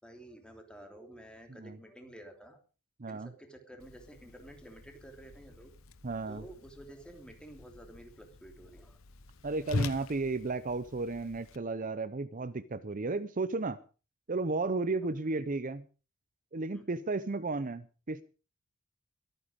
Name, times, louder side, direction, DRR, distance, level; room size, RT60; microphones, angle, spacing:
voice 1, 0.0-2.6 3.1-5.7 6.2-9.0 16.7-16.8, right 1 dB, 5° left, 4 dB, 3.3 m, -51 dB
voice 2, 3.0-3.3 6.0-6.4 9.4-13.8 14.3-15.9 16.5-18.2, right 3 dB, 40° right, 13 dB, 0.7 m, -33 dB
Whoosh swoosh swish, 3.8-11.6, left 3 dB, 80° left, 1.0 m, -43 dB
22.5 x 9.3 x 5.2 m, 0.36 s
head